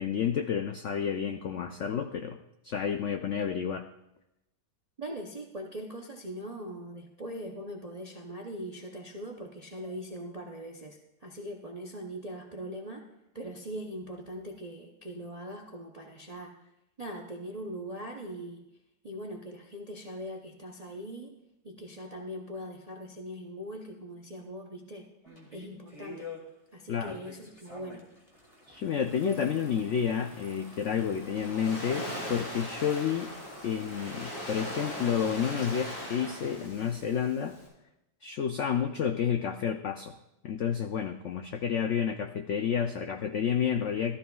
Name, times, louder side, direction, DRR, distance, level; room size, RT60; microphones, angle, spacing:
voice 1, 0.0-3.9 26.9-27.2 28.7-33.3 33.6-37.6 38.2-40.1 40.4-44.2, left 8 dB, 80° left, 7 dB, 0.6 m, -30 dB
voice 2, 5.0-13.1 13.3-16.7 17.0-18.7 19.0-21.4 21.6-25.1 25.5-26.3 26.7-28.1, equal, 50° right, 1 dB, 0.4 m, -41 dB
sound 1, 25.2-26.4 27.0-35.2, left 2 dB, 20° left, 1.7 m, -49 dB
Waves surf, 30.9-37.7, equal, 60° left, 4.5 m, -40 dB
15.0 x 13.0 x 2.3 m, 0.90 s
omnidirectional pair, 1.9 m